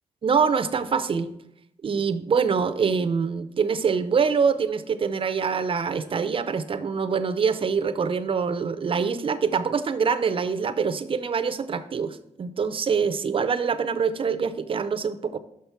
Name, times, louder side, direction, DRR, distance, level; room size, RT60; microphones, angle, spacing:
voice 1, 0.2-1.3 1.8-15.4, right 6 dB, 45° right, 12 dB, 0.5 m, -25 dB
6.1 x 5.7 x 4.6 m, 0.76 s
cardioid pair, 100°, 13 cm